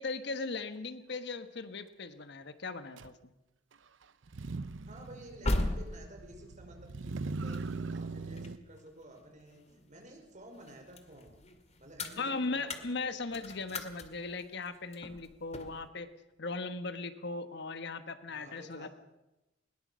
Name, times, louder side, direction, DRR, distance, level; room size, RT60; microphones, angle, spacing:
voice 1, 0.0-3.3 12.2-16.1 16.4-18.9, left 3 dB, 60° left, 10 dB, 1.3 m, -38 dB
Motor vehicle (road), 3.0-3.1 4.2-8.6, right 3 dB, 75° right, 0.7 m, -40 dB
voice 2, 4.8-11.4 11.8-13.1 18.3-18.9, right 1 dB, 40° right, 3 dB, 5.1 m, -52 dB
sound 1, 5.0-10.0 10.4-15.9, left 1 dB, 35° left, 2.1 m, -39 dB
21.0 x 19.5 x 6.3 m, 0.98 s
head